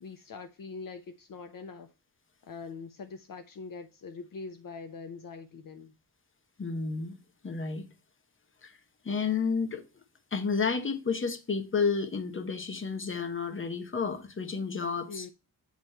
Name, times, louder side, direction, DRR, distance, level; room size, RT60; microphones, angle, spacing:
voice 1, 0.0-1.9 2.4-5.9 15.1-15.3, left 4 dB, 55° left, 0.7 m, -43 dB
voice 2, 6.6-7.2 7.4-7.8 8.6-8.8 9.0-9.8 10.3-15.3, left 5 dB, 30° left, 0.9 m, -31 dB
8.3 x 3.1 x 5.4 m
wide cardioid pair, 170°, 39 cm